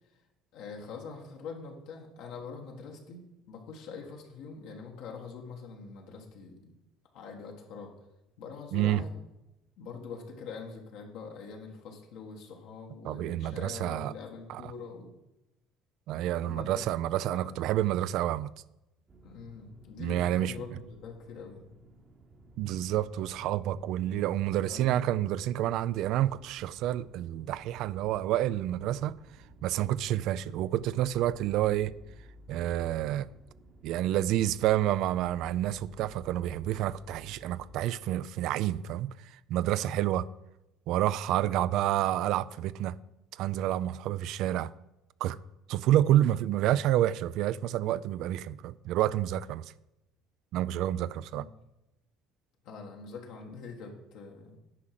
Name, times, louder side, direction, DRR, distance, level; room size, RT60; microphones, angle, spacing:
voice 1, 0.5-6.7 7.1-7.9 8.4-9.2 9.8-15.1 16.4-16.8 17.3-17.6 19.2-21.7 24.6-25.0 51.3-51.4 52.6-54.6, left 5 dB, 75° left, 1.5 m, -44 dB
voice 2, 8.7-9.0 13.0-14.1 14.5-14.7 16.1-18.5 20.0-20.5 22.6-29.1 29.6-31.9 32.5-33.3 33.8-39.1 39.5-40.3 40.9-43.0 43.4-44.7 45.2-45.4 45.7-49.6 50.5-51.4, right 13 dB, 65° right, 0.3 m, -29 dB
sound 1, 19.1-37.8, equal, 30° right, 0.9 m, -55 dB
10.0 x 4.9 x 5.9 m
supercardioid pair, 110°, 0 cm